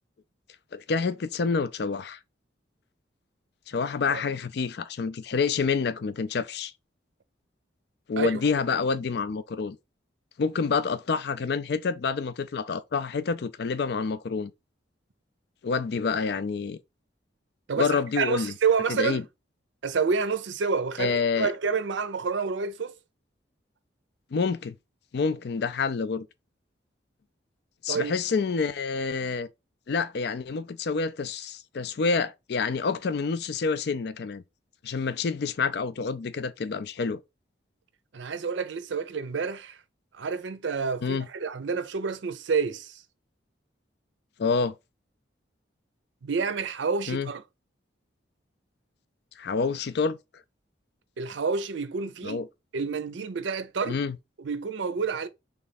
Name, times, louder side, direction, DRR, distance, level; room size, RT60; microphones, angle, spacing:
voice 1, 0.7-2.2 3.7-6.7 8.1-9.8 10.4-14.5 15.6-16.8 17.8-18.5 18.9-19.2 21.0-21.5 24.3-24.7 25.1-26.3 27.8-29.5 29.9-34.4 34.8-37.2 41.0-41.3 44.4-44.7 47.1-47.3 49.4-50.2 52.2-52.5 53.9-54.2, left 5 dB, 60° left, 0.4 m, -28 dB
voice 2, 17.7-19.2 19.8-22.9 27.9-28.1 38.1-39.8 40.1-43.0 46.2-47.4 51.2-52.4 52.7-54.0 54.4-55.3, right 5 dB, 75° right, 0.5 m, -28 dB
3.5 x 3.3 x 4.0 m
head